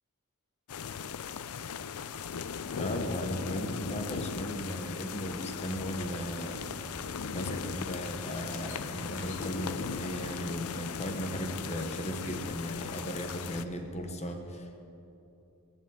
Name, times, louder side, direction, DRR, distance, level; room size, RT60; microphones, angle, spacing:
sound 1, 0.7-13.6, left 6 dB, 80° left, 0.5 m, -38 dB
voice 1, 2.7-6.8 7.3-14.9, equal, 30° left, 4 dB, 1.2 m, -37 dB
sound 2, 5.3-13.8, equal, 60° left, 3.4 m, -48 dB
19.5 x 7.3 x 8.4 m, 2.8 s
head